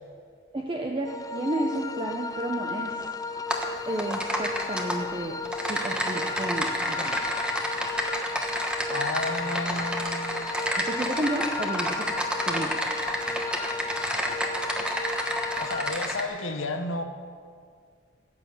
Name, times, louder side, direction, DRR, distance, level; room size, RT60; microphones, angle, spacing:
voice 1, 0.5-2.9 3.8-7.2 10.8-11.9 12.4-12.8, right 1 dB, 25° right, 1 dB, 0.9 m, -31 dB
sound 1, 1.0-15.9, left 3 dB, 20° left, 0.3 m, -35 dB
Typing, 3.5-3.7 4.0-5.0 5.4-16.2, equal, 5° right, 1.2 m, -30 dB
voice 2, 8.9-10.5 15.6-17.0, left 2 dB, 90° left, 6 dB, 1.0 m, -32 dB
15.5 x 6.9 x 8.4 m, 2.1 s
head